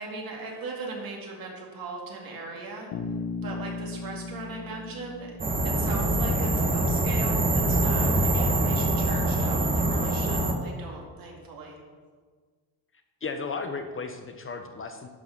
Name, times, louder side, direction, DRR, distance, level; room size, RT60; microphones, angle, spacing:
voice 1, 0.0-2.9 3.4-5.4 5.6-11.8, right 3 dB, 55° right, -1 dB, 2.2 m, -39 dB
Bass guitar, 2.9-6.8, left 4 dB, 75° left, 1.0 m, -37 dB
sound 1, 5.4-10.5, right 1 dB, 20° right, 0.9 m, -24 dB
voice 2, 13.2-15.1, left 4 dB, 30° left, 6 dB, 0.6 m, -34 dB
11.0 x 3.8 x 5.9 m, 1.5 s
cardioid pair, 115°, 42 cm